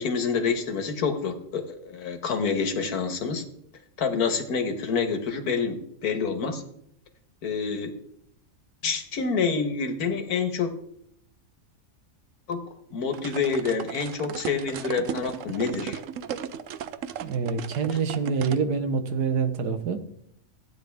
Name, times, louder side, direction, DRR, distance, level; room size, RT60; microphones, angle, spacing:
voice 1, 0.0-3.4 4.0-5.8 6.0-6.6 7.4-7.9 8.8-10.7 12.5-12.6 12.9-16.0, left 5 dB, 70° left, 6 dB, 1.8 m, -27 dB
sound 1, 13.1-18.6, right 8 dB, 65° right, 0.9 m, -35 dB
voice 2, 17.2-20.0, right 5 dB, 85° right, 9 dB, 1.6 m, -26 dB
16.5 x 9.4 x 3.5 m, 0.73 s
omnidirectional pair, 1.7 m